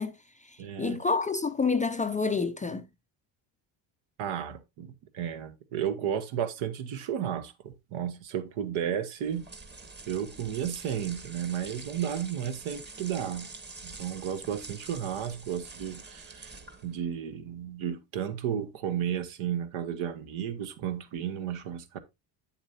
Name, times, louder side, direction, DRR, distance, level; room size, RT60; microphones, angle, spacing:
voice 1, 0.0-2.9, left 4 dB, 15° left, 0.4 m, -29 dB
voice 2, 0.6-1.0 4.2-9.5 10.1-13.5 13.8-16.5 16.8-22.0, right 9 dB, 75° right, 1.3 m, -33 dB
sound 1, 9.2-17.0, right 3 dB, 20° right, 1.3 m, -46 dB
8.1 x 7.3 x 2.7 m
cardioid pair, 95°, 49 cm